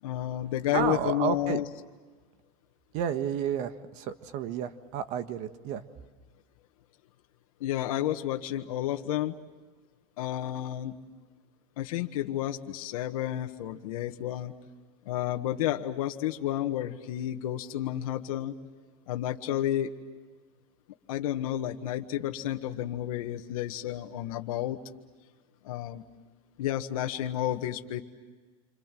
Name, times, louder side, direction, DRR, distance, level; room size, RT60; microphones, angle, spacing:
voice 1, 0.0-1.6 7.6-9.4 10.2-10.9 11.8-14.5 15.0-18.5 19.1-19.9 21.1-24.8 25.6-26.0 26.6-28.0, left 12 dB, 80° left, 4 dB, 1.6 m, -31 dB
voice 2, 0.7-1.6 2.9-5.8, right 8 dB, 45° right, 10 dB, 1.5 m, -31 dB
28.0 x 26.0 x 7.6 m, 1.4 s
supercardioid pair, 160°, 18 cm